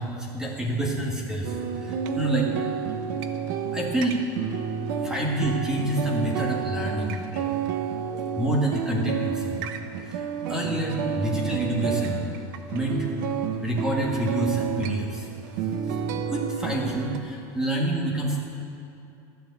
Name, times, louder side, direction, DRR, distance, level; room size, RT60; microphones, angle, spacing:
voice 1, 0.0-2.5 3.7-4.2 5.0-9.6 10.0-12.2 12.7-13.1 13.6-15.3 15.9-18.5, right 1 dB, 5° right, -2 dB, 1.6 m, -28 dB
sound 1, 1.4-17.2, right 7 dB, 70° right, 0.9 m, -30 dB
12.0 x 8.1 x 7.9 m, 2.7 s
cardioid pair, 160°, 10 cm